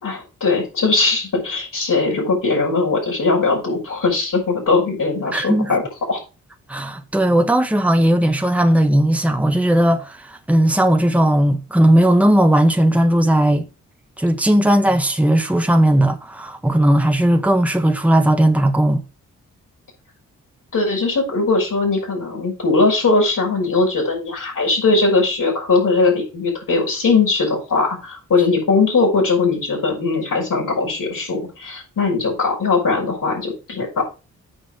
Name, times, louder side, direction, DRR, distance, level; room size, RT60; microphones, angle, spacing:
voice 1, 0.0-5.8 6.1-6.2 20.7-34.0, left 3 dB, 65° left, 6.0 m, -19 dB
voice 2, 5.3-5.7 6.7-13.7 14.2-19.0, right 1 dB, 5° right, 1.3 m, -16 dB
8.7 x 5.6 x 5.2 m
supercardioid pair, 40°, 36 cm